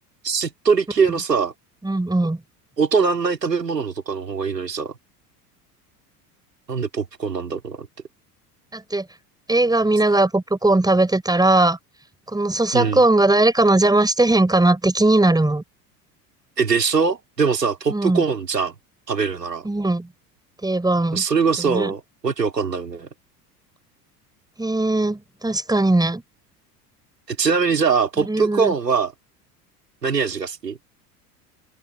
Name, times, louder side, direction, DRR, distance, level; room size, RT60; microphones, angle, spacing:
voice 1, 0.2-1.5 2.8-4.9 6.7-7.9 12.7-13.0 16.6-18.8 19.1-19.7 21.1-23.1 27.3-29.1 30.0-30.8, right 5 dB, 85° right, 4.2 m, -22 dB
voice 2, 1.8-2.4 8.7-9.0 9.5-11.8 12.3-15.6 17.9-18.2 19.6-20.1 20.6-21.2 21.6-21.9 24.6-26.2 28.2-28.7, right 2 dB, 10° right, 5.2 m, -19 dB
open air
figure-of-eight pair, 70°, 48 cm